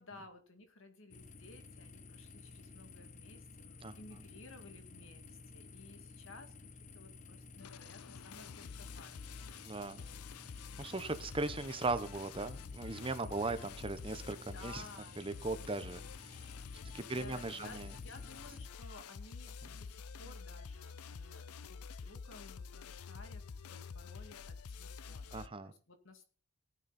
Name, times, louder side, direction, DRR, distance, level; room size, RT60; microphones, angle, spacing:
voice 1, 0.0-6.7 6.9-10.7 14.5-15.2 17.1-25.4 25.6-26.3, left 2 dB, 60° left, 7 dB, 2.3 m, -56 dB
sound 1, 1.1-18.7, left 3 dB, 35° left, 0.9 m, -54 dB
sound 2, 7.6-25.5, left 5 dB, 90° left, 0.6 m, -48 dB
voice 2, 9.6-10.0 10.8-14.8 15.2-16.5 16.9-17.9 25.3-25.7, right 3 dB, 25° right, 11 dB, 0.8 m, -38 dB
17.5 x 9.5 x 4.2 m, 0.38 s
head